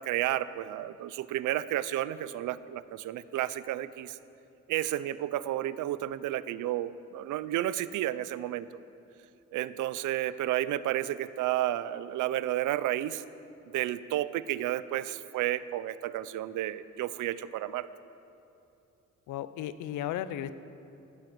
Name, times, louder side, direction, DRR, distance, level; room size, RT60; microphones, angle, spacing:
voice 1, 0.0-4.2 4.7-8.7 9.5-13.2 13.7-17.9, right 13 dB, 85° right, 16 dB, 0.6 m, -31 dB
voice 2, 19.3-20.5, left 11 dB, 90° left, 14 dB, 0.7 m, -35 dB
17.0 x 12.0 x 6.2 m, 2.7 s
cardioid pair, 90°, 30 cm